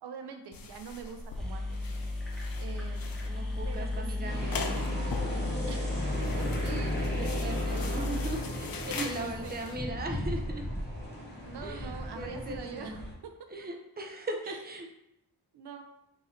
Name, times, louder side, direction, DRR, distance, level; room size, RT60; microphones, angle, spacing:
voice 1, 0.0-2.0 2.6-3.1 3.6-4.5 5.7-5.9 6.4-8.3 9.4-9.8 11.4-13.3 14.4-14.6 15.5-15.8, right 6 dB, 75° right, 6 dB, 0.5 m, -44 dB
sound 1, 0.5-9.8, left 5 dB, 60° left, 0.5 m, -42 dB
sound 2, 1.1-1.2 1.4-9.2, left 2 dB, ahead, 0.9 m, -34 dB
voice 2, 3.2-4.8 7.1-10.6 11.6-11.9 12.1-13.0 13.5-14.9, right 1 dB, 25° right, 2 dB, 0.6 m, -38 dB
sound 3, 4.2-13.1, equal, 25° left, 1.0 m, -37 dB
3.9 x 2.7 x 4.1 m, 0.82 s
wide cardioid pair, 100°, 40 cm